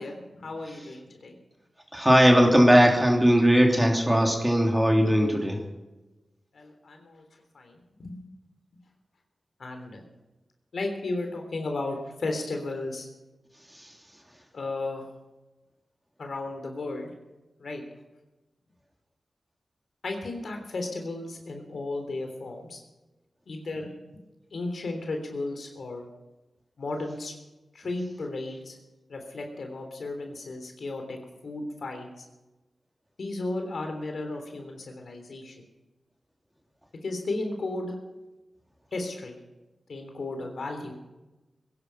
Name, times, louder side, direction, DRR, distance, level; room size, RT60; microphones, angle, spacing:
voice 1, 0.0-1.4 6.5-7.2 7.5-8.2 9.6-10.0 10.7-13.1 14.5-15.1 16.2-17.1 17.6-17.8 20.0-22.8 23.5-23.9 24.5-26.0 26.8-27.3 27.7-28.8 29.1-32.2 33.2-35.6 37.0-37.9 38.9-39.4 39.9-40.9, left 2 dB, 75° left, 4 dB, 3.3 m, -34 dB
voice 2, 1.9-5.6, equal, 10° right, 2 dB, 3.1 m, -19 dB
21.5 x 11.0 x 5.8 m, 1.1 s
cardioid pair, 60°, 0 cm